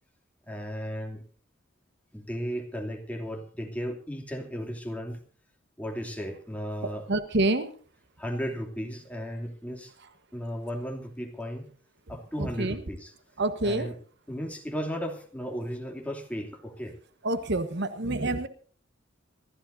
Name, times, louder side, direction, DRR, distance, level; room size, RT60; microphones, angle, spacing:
voice 1, 0.5-1.2 2.1-5.2 5.8-7.1 8.2-9.9 10.3-11.7 12.1-13.1 13.6-14.0 14.3-16.9, equal, 5° left, 1 dB, 2.7 m, -35 dB
voice 2, 7.1-7.7 12.4-12.8 13.4-13.9 17.2-18.5, right 2 dB, 60° right, 10 dB, 1.3 m, -27 dB
26.5 x 13.5 x 2.7 m, 0.43 s
head